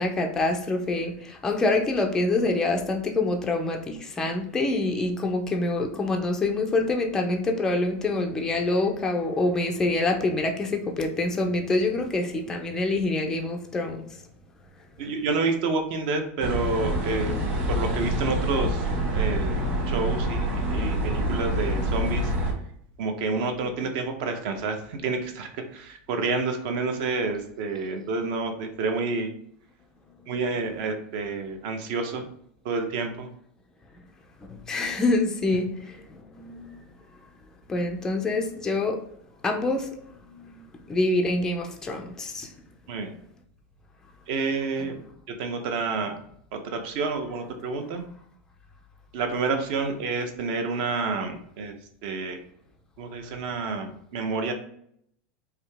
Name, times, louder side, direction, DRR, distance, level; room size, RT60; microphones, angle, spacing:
voice 1, 0.0-14.0 34.5-36.8 37.7-39.0 39.4-39.9 40.2-40.6 40.9-42.5, left 2 dB, 10° left, 3 dB, 0.4 m, -26 dB
voice 2, 15.0-17.3 17.7-19.5 19.9-22.3 23.0-29.3 30.3-32.2 32.6-33.3 42.9-43.1 44.3-45.0 45.3-46.1 46.5-48.0 49.1-51.7 52.0-52.4 53.0-54.5, right 4 dB, 45° right, 6 dB, 0.7 m, -29 dB
sound 1, 16.4-22.5, right 1 dB, 20° right, 1.2 m, -26 dB
4.9 x 2.8 x 3.4 m, 0.68 s
supercardioid pair, 180°, 7 cm